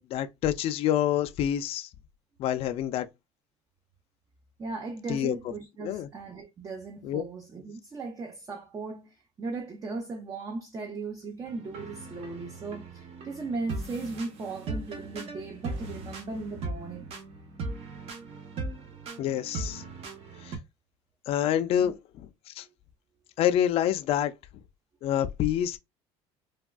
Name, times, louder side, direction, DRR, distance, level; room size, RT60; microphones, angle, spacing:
voice 1, 0.0-1.9 2.4-3.1 5.1-5.4 5.8-6.1 7.0-7.2 19.2-19.8 20.4-20.5 21.3-22.0 22.6-22.7 23.4-24.3 25.0-25.8, left 10 dB, 50° left, 0.4 m, -27 dB
voice 2, 4.6-17.1 21.8-21.9 22.6-22.7, right 3 dB, 30° right, 0.5 m, -37 dB
sound 1, 11.5-20.6, right 3 dB, 55° right, 0.8 m, -39 dB
3.3 x 2.3 x 2.2 m
cardioid pair, 120°, 13 cm